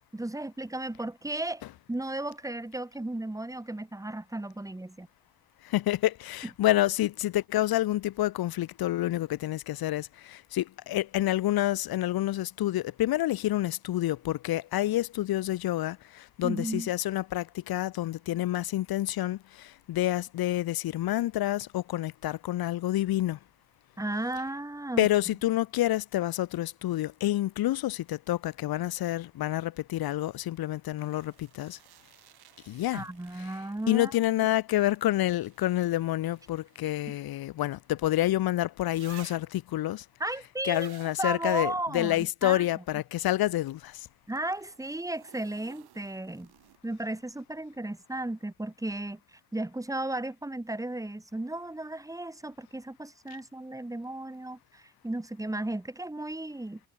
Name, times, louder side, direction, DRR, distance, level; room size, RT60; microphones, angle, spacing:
voice 1, 0.1-5.1 16.4-16.9 24.0-25.1 32.9-34.1 40.2-40.9 41.2-42.6 44.3-46.5 46.8-49.2 49.5-56.8, right 1 dB, 10° right, 4.5 m, -34 dB
voice 2, 5.7-23.4 25.0-31.8 32.7-33.0 33.4-33.5 33.9-40.0 40.6-43.9, left 14 dB, 70° left, 1.3 m, -28 dB
sound 1, 31.0-34.2 34.9-38.1 38.8-39.7 40.6-41.3 44.3-47.0 48.9-49.0, right 14 dB, 80° right, 5.1 m, -56 dB
cardioid pair, 110°, 38 cm